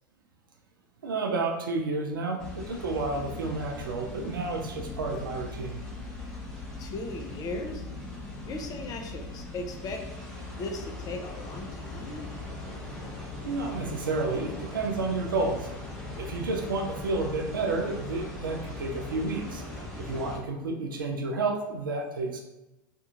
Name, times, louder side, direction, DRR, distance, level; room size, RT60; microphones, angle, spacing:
voice 1, 1.0-5.8 13.4-15.7 16.2-19.6 20.0-22.4, right 3 dB, 90° right, 2 dB, 0.4 m, -31 dB
sound 1, 2.4-20.4, left 2 dB, 5° left, 0.9 m, -40 dB
voice 2, 6.8-7.9 8.5-10.0 10.5-12.3, left 2 dB, 35° left, 3 dB, 0.5 m, -37 dB
2.5 x 2.3 x 2.8 m, 0.97 s
hypercardioid pair, 85°, 11 cm